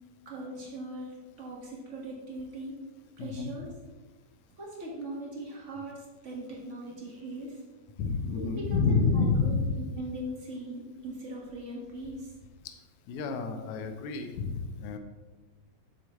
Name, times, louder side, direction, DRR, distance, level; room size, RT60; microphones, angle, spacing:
voice 1, 0.2-2.8 3.2-3.7 4.6-7.6 8.3-9.6 9.9-12.3, right 1 dB, 45° right, -3 dB, 0.9 m, -40 dB
voice 2, 3.2-3.5 8.0-9.7 12.6-12.8 13.1-15.0, left 4 dB, 75° left, 6 dB, 1.8 m, -29 dB
11.5 x 7.7 x 3.1 m, 1.3 s
omnidirectional pair, 4.2 m